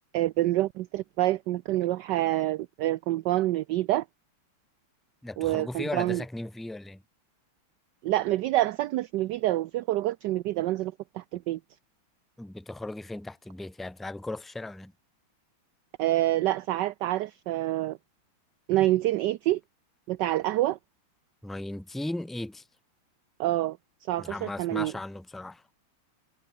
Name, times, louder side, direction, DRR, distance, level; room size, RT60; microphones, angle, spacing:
voice 1, 0.1-4.0 5.4-6.2 8.0-11.6 16.0-18.0 18.7-19.6 20.1-20.8 23.4-23.8 24.1-24.9, right 15 dB, 75° right, 1.0 m, -27 dB
voice 2, 5.2-7.0 12.4-14.9 21.4-22.6 24.2-25.6, left 2 dB, ahead, 0.9 m, -37 dB
omnidirectional pair, 2.4 m